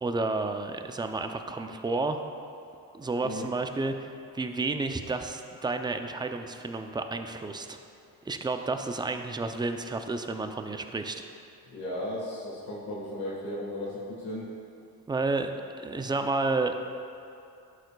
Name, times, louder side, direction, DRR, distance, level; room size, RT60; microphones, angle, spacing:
voice 1, 0.0-2.2 2.9-7.8 8.2-11.2 15.1-15.5 15.8-16.8, right 3 dB, 10° right, 6 dB, 0.4 m, -31 dB
voice 2, 11.6-14.5, left 1 dB, 75° left, -7 dB, 1.6 m, -35 dB
11.5 x 6.5 x 2.3 m, 2.6 s
cardioid pair, 85°, 38 cm